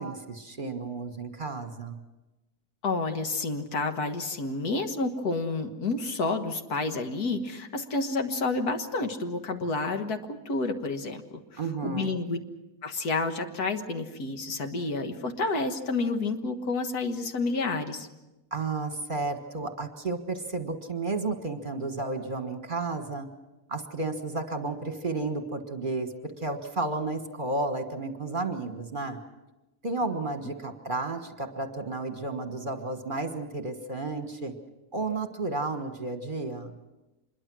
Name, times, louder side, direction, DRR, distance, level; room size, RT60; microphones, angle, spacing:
voice 1, 0.0-2.0 11.6-12.1 18.5-23.3 23.7-26.1 26.4-29.2 29.8-34.5 34.9-36.8, right 3 dB, 35° right, 6 dB, 1.6 m, -32 dB
voice 2, 2.8-11.2 11.8-12.4 12.8-18.1, left 3 dB, 80° left, 6 dB, 2.1 m, -29 dB
26.0 x 22.0 x 6.2 m, 1.0 s
omnidirectional pair, 1.6 m